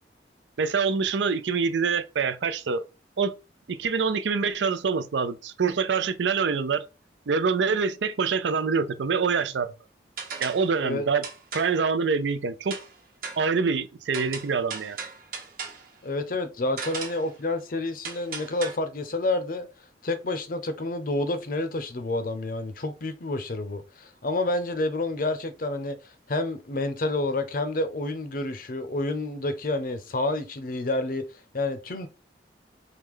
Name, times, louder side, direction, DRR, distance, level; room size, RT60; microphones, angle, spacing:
voice 1, 0.6-2.8 3.2-3.4 3.7-6.8 7.3-9.7 10.4-11.2 11.5-12.8 13.4-15.0, right 5 dB, 80° right, 0.5 m, -25 dB
sound 1, 10.2-10.7 11.2-11.8 12.7-12.9 13.2-13.5 14.1-15.9 16.8-17.3 18.0-18.8, right 5 dB, 55° right, 1.1 m, -37 dB
voice 2, 16.0-19.7 20.0-26.0 26.3-31.2 31.5-32.1, left 2 dB, 50° left, 0.6 m, -29 dB
4.7 x 2.2 x 3.6 m
head